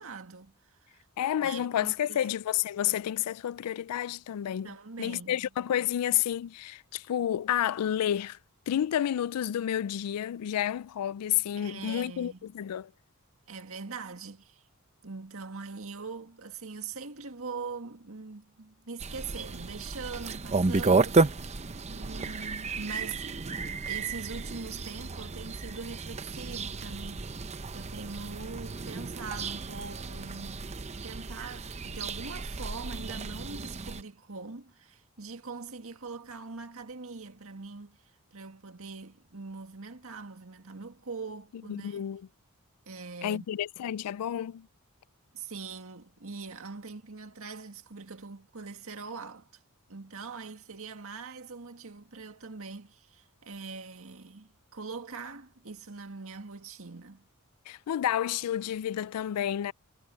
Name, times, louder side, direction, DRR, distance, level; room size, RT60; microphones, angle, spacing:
voice 1, 0.0-1.1 1.4-2.2 4.6-5.5 11.6-12.4 13.5-14.6 15.0-21.5 21.9-23.3 23.9-30.7 31.0-38.0 38.3-42.0 42.9-43.5 45.3-49.5 49.9-57.2, right 4 dB, 65° right, 2.1 m, -42 dB
voice 2, 1.2-4.7 5.0-8.4 8.7-12.9 41.7-42.3 43.2-44.7 57.7-59.7, left 10 dB, 90° left, 0.3 m, -30 dB
sound 1, 19.0-34.0, right 3 dB, 30° right, 0.7 m, -32 dB
head